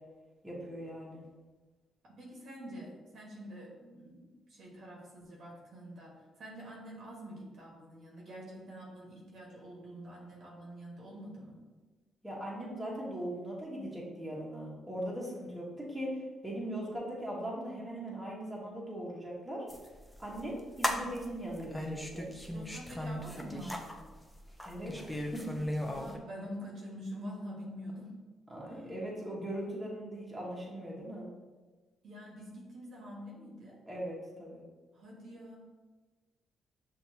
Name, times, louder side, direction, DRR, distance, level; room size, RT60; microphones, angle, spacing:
voice 1, 0.4-1.2 12.2-19.6 20.2-22.3 24.6-25.4 28.5-31.3 33.9-34.6, right 1 dB, 10° right, -4 dB, 1.2 m, -40 dB
voice 2, 2.0-11.6 22.5-24.1 25.9-28.1 28.7-28.9 32.0-33.8 34.9-35.6, equal, 65° right, -2 dB, 1.2 m, -46 dB
sound 1, 19.7-26.2, left 1 dB, 10° left, 0.5 m, -37 dB
6.3 x 2.7 x 2.8 m, 1.3 s
cardioid pair, 90°, 0 cm